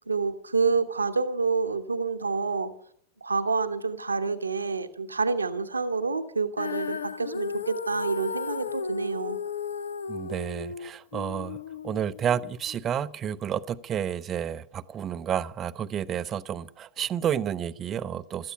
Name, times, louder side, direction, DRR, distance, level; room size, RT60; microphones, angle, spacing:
voice 1, 0.1-2.7 3.2-9.4, right 4 dB, 80° right, 1.1 m, -28 dB
Female singing, 6.6-12.8, left 5 dB, 70° left, 0.6 m, -35 dB
voice 2, 10.1-11.6 11.8-18.5, right 9 dB, 25° right, 0.6 m, -30 dB
16.0 x 13.5 x 5.9 m
figure-of-eight pair, 90°, 0 cm